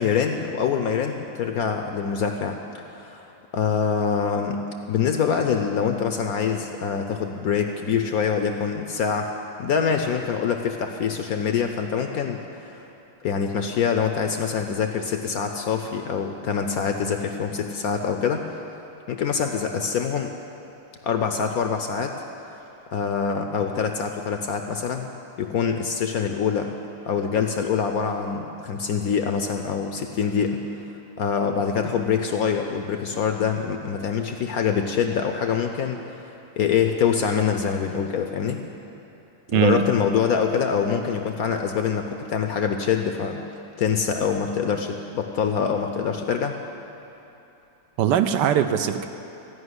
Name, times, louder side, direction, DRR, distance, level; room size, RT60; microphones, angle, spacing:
voice 1, 0.0-2.6 2.9-4.6 4.9-9.3 9.6-12.9 13.2-18.4 19.1-20.3 21.0-22.1 22.9-25.1 25.4-26.7 27.1-30.6 31.2-36.2 36.6-38.6 39.5-43.4 43.8-46.5, left 6 dB, 65° left, 5 dB, 0.9 m, -25 dB
voice 2, 39.5-39.9 48.0-49.0, right 9 dB, 75° right, 8 dB, 1.2 m, -21 dB
15.0 x 5.5 x 9.6 m, 2.9 s
omnidirectional pair, 2.0 m